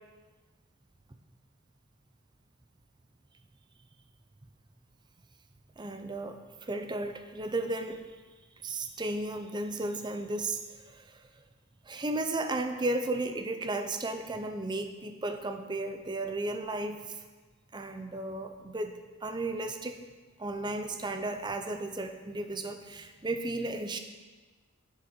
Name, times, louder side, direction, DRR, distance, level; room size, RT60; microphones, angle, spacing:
voice 1, 5.8-8.1 8.6-11.4 11.9-17.2 17.7-18.9 19.2-20.0 20.4-24.0, right 2 dB, 20° right, 7 dB, 0.5 m, -34 dB
9.4 x 7.7 x 4.3 m, 1.4 s
head